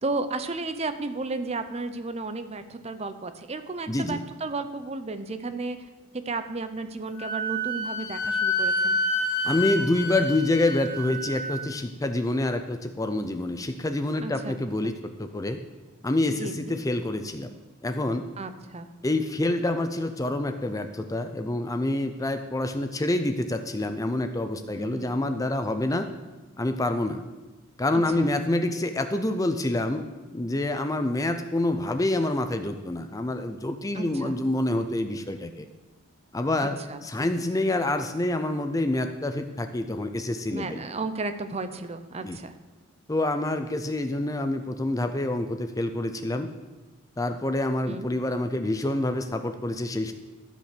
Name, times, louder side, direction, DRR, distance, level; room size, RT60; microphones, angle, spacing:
voice 1, 0.0-5.8 6.1-9.0 14.2-14.6 16.4-16.5 18.4-18.9 24.6-25.1 27.9-28.3 33.9-34.4 36.6-37.0 40.5-42.5 47.9-48.1, right 3 dB, 30° right, 9 dB, 0.6 m, -33 dB
voice 2, 3.9-4.2 9.4-15.6 16.0-17.5 17.8-18.3 19.0-26.1 26.6-27.2 27.8-30.1 30.3-35.7 36.3-40.8 42.2-42.4 43.1-46.5 47.2-50.1, left 1 dB, 15° left, 8 dB, 0.5 m, -27 dB
Wind instrument woodwind instrument, 7.2-11.6, left 1 dB, 75° left, 1.7 m, -28 dB
14.0 x 5.2 x 6.7 m, 1.2 s
head